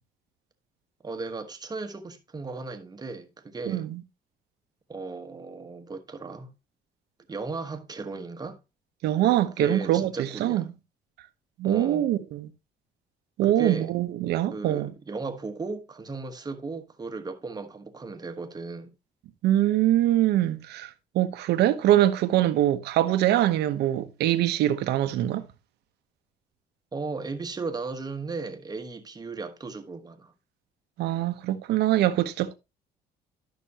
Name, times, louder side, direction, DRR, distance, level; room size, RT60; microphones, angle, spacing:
voice 1, 1.0-3.9 4.9-6.5 7.3-8.6 9.6-10.7 11.6-12.1 13.4-13.9 14.5-18.9 26.9-30.3, right 3 dB, 25° right, 1.2 m, -36 dB
voice 2, 3.7-4.0 9.0-10.7 11.6-12.5 13.4-14.9 19.4-25.4 31.0-32.5, right 13 dB, 80° right, 1.0 m, -23 dB
12.0 x 6.0 x 2.9 m
cardioid pair, 110°, 17 cm